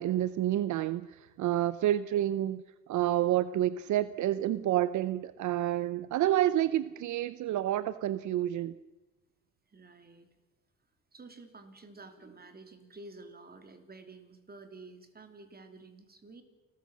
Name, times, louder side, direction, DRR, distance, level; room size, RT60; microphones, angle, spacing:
voice 1, 0.0-8.7, right 13 dB, 75° right, 0.6 m, -29 dB
voice 2, 1.6-2.1 9.7-10.3 11.1-16.4, right 3 dB, 30° right, 3.1 m, -51 dB
29.0 x 14.0 x 6.3 m
cardioid pair, 90°, 30 cm